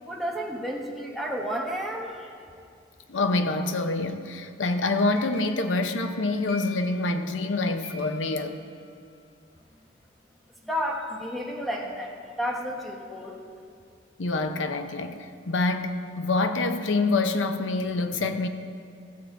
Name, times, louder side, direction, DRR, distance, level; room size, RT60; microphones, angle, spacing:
voice 1, 0.1-2.3 10.6-13.4, equal, ahead, 1.0 m, -32 dB
voice 2, 3.1-8.6 14.2-18.5, left 2 dB, 80° left, 0.7 m, -26 dB
sound 1, 4.7-7.5 7.8-9.1, left 3 dB, 55° left, 2.0 m, -47 dB
14.5 x 7.3 x 4.6 m
head